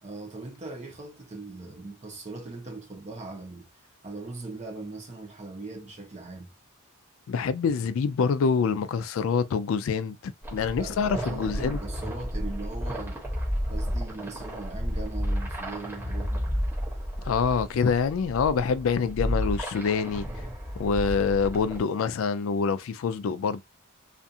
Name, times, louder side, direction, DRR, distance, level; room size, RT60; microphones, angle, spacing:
voice 1, 0.0-3.7 4.0-6.5 10.8-13.2 13.7-16.4, right 3 dB, 30° right, 0.7 m, -39 dB
voice 2, 7.3-11.8 17.2-20.3 20.8-23.6, left 5 dB, 70° left, 0.3 m, -26 dB
sound 1, 10.4-21.8, equal, 10° right, 0.9 m, -32 dB
2.5 x 2.4 x 2.7 m
head